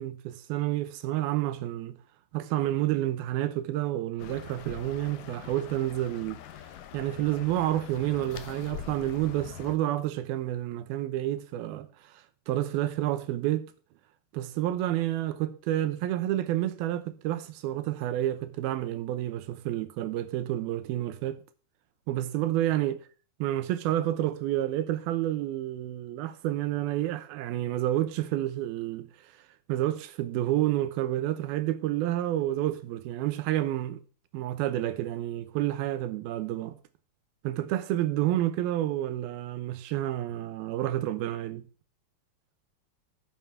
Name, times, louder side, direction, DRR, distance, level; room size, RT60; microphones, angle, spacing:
voice 1, 0.0-2.0 2.3-6.4 6.9-11.9 12.5-13.7 14.3-21.4 22.1-23.0 23.4-29.1 29.7-34.0 34.3-36.8 37.4-41.7, right 13 dB, 85° right, 2.7 m, -29 dB
sound 1, 4.2-9.8, left 11 dB, 70° left, 2.3 m, -44 dB
9.3 x 7.1 x 5.9 m
omnidirectional pair, 4.3 m